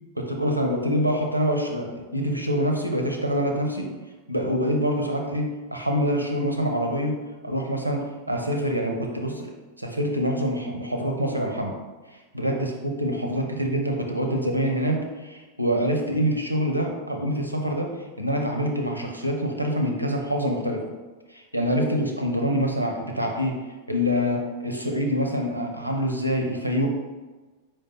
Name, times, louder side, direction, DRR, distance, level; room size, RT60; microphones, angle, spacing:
voice 1, 0.2-3.9 4.3-7.1 7.4-9.5 9.8-11.7 12.3-17.9 18.2-20.9 21.3-23.6 23.9-26.9, equal, 90° right, 2 dB, 0.6 m, -25 dB
5.1 x 2.9 x 3.7 m, 1.3 s
figure-of-eight pair, 90°, 0 cm